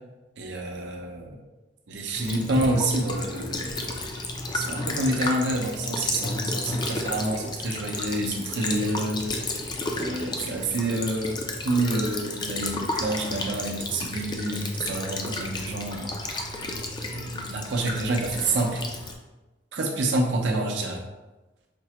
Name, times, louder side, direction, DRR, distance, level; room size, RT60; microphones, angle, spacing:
voice 1, 0.4-1.4 1.9-3.9 4.5-9.4 10.0-16.1 17.0-18.8 19.7-21.0, right 2 dB, 80° right, 1 dB, 0.6 m, -28 dB
Child speech kid speaking / Bird vocalization bird call bird song / Stream, 2.1-19.1, left 2 dB, 25° left, 0.4 m, -32 dB
5.1 x 2.0 x 2.9 m, 1.1 s
head